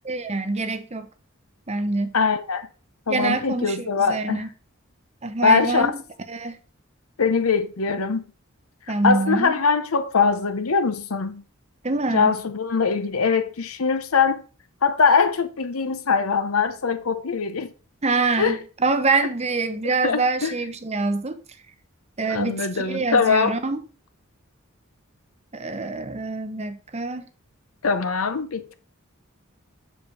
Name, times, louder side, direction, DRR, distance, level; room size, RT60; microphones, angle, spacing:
voice 1, 0.1-1.1 1.7-2.2 3.1-4.5 5.2-5.9 6.3-6.6 8.9-9.5 11.8-12.3 18.0-21.4 22.2-23.8 25.5-27.3, right 3 dB, 30° right, 0.8 m, -25 dB
voice 2, 2.1-2.7 3.1-4.5 5.4-5.9 7.2-8.2 9.0-11.4 12.1-14.4 14.8-17.7 18.4-18.6 19.8-20.5 22.3-23.6 27.8-28.7, left 5 dB, 85° left, 0.8 m, -22 dB
7.0 x 5.0 x 5.1 m
head